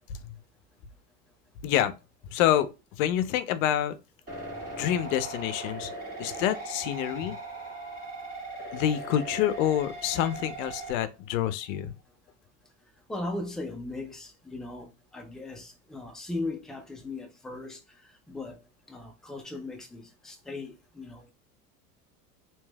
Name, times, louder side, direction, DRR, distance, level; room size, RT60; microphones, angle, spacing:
voice 1, 1.6-1.9 2.3-3.9 4.8-7.4 8.7-11.9, left 11 dB, 65° left, 0.6 m, -27 dB
sound 1, 4.3-10.9, right 2 dB, 20° right, 1.9 m, -39 dB
voice 2, 13.1-17.8 18.3-18.6 18.9-21.3, left 2 dB, ahead, 0.3 m, -38 dB
3.1 x 2.9 x 2.2 m
hypercardioid pair, 90°, 43 cm